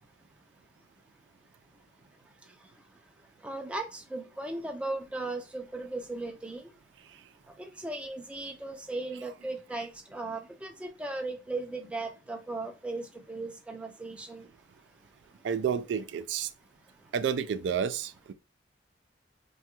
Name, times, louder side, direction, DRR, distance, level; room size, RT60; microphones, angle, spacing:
voice 1, 3.4-6.6 7.6-14.5, right 2 dB, 5° right, 0.4 m, -37 dB
voice 2, 15.4-16.5 17.1-18.3, right 7 dB, 85° right, 0.3 m, -30 dB
3.3 x 2.3 x 2.8 m
head